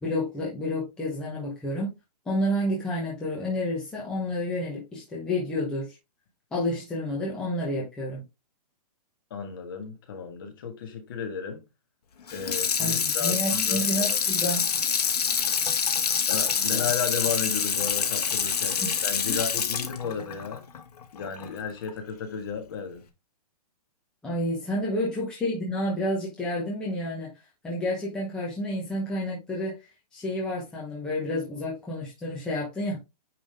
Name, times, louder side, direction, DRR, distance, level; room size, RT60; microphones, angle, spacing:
voice 1, 0.0-1.9 2.3-5.9 6.5-8.2 12.8-14.7 18.8-18.9 19.3-19.4 24.2-27.3 27.6-29.8 30.1-33.0, left 1 dB, 5° left, 0.9 m, -30 dB
voice 2, 9.3-11.6 12.3-14.2 16.3-20.6 21.1-23.0, left 6 dB, 35° left, 1.7 m, -34 dB
Water tap faucet / Sink (filling or washing), 12.3-21.5 21.9-22.0, left 7 dB, 70° left, 1.6 m, -26 dB
9.3 x 3.6 x 3.5 m
hypercardioid pair, 180°, 20 cm